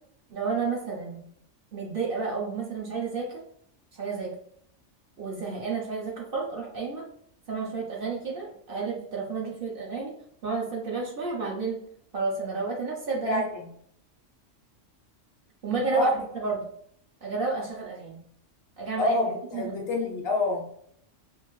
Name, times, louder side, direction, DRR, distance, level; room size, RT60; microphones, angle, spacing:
voice 1, 0.3-1.2 1.7-3.4 3.9-4.3 5.2-7.1 7.5-10.1 10.4-11.8 12.1-13.4 15.6-16.1 16.3-16.6 17.2-18.2 18.8-19.2 19.5-19.7, right 4 dB, 55° right, -1 dB, 0.7 m, -31 dB
voice 2, 13.2-13.7 15.9-16.1 19.0-20.7, left 2 dB, 65° left, 1 dB, 0.7 m, -27 dB
2.6 x 2.4 x 2.9 m, 0.67 s
omnidirectional pair, 1.3 m